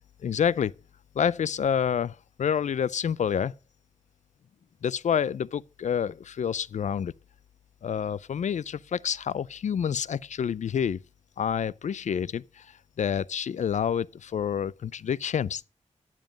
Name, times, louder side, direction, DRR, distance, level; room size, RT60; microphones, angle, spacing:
voice 1, 0.2-0.7 1.2-3.5 4.8-7.1 7.8-11.0 11.4-12.7 13.0-15.6, left 8 dB, 75° left, 0.4 m, -28 dB
10.5 x 7.4 x 5.1 m
wide cardioid pair, 95°, 12 cm